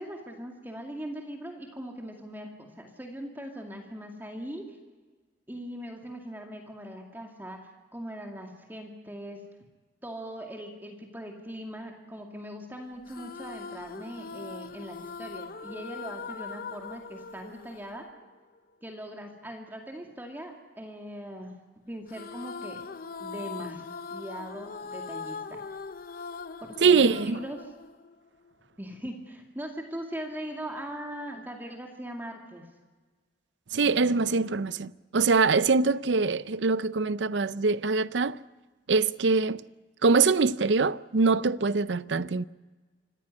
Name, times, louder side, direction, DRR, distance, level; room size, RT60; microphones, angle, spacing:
voice 1, 0.0-4.8 5.5-9.4 10.0-18.1 18.8-21.5 21.9-22.8 23.2-23.9 24.1-25.6 26.6-27.7 28.8-32.7, equal, 10° right, 2.4 m, -40 dB
sound 1, 13.1-18.6 22.1-28.5, left 5 dB, 50° left, 0.7 m, -41 dB
voice 2, 26.8-27.4 33.7-38.4 38.9-39.6 40.0-42.4, right 4 dB, 80° right, 0.6 m, -23 dB
25.5 x 15.0 x 9.8 m
head